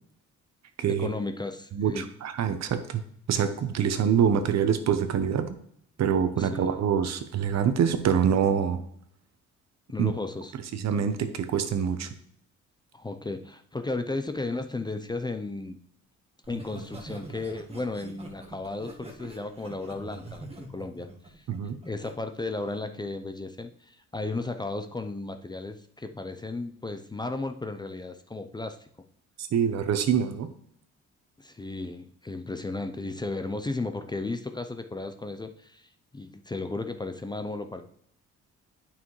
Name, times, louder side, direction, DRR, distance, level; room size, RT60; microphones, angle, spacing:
voice 1, 0.9-2.1 6.4-6.7 9.9-10.5 12.9-15.8 16.5-21.4 21.8-28.8 31.4-37.8, left 2 dB, 15° left, 7 dB, 0.5 m, -34 dB
voice 2, 1.7-3.0 3.3-5.6 6.0-8.8 10.0-10.1 10.7-12.1 21.5-21.8 29.4-30.5, right 8 dB, 60° right, 9 dB, 0.9 m, -25 dB
Laughter, 16.4-22.1 22.5-22.9, right 2 dB, 20° right, 1.5 m, -44 dB
8.7 x 5.8 x 3.1 m, 0.67 s
cardioid pair, 90°, 30 cm